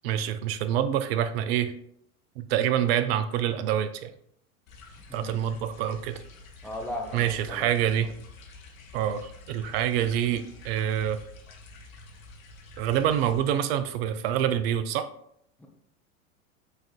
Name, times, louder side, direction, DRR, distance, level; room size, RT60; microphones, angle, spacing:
voice 1, 0.0-1.7 2.4-4.1 5.1-6.2 7.1-8.1 8.9-11.2 12.8-15.1, right 10 dB, 45° right, 11 dB, 0.4 m, -26 dB
sound 1, 4.7-13.4, left 3 dB, 70° left, 0.9 m, -48 dB
voice 2, 6.6-7.7 15.6-15.7, left 1 dB, 5° left, 0 dB, 0.5 m, -37 dB
6.4 x 2.5 x 2.4 m, 0.71 s
figure-of-eight pair, 95°, 43 cm